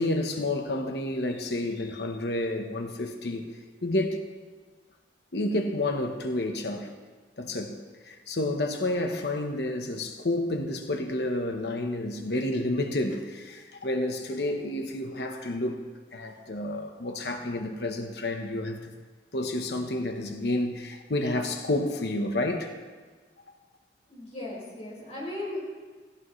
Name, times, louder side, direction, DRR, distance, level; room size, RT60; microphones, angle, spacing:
voice 1, 0.0-3.5 3.8-4.3 5.3-6.9 7.4-7.8 8.0-15.8 16.1-18.9 19.3-22.7, left 1 dB, 65° left, 5 dB, 1.1 m, -30 dB
voice 2, 24.1-25.6, left 2 dB, 40° left, -5 dB, 5.5 m, -37 dB
17.5 x 16.5 x 3.3 m, 1.4 s
head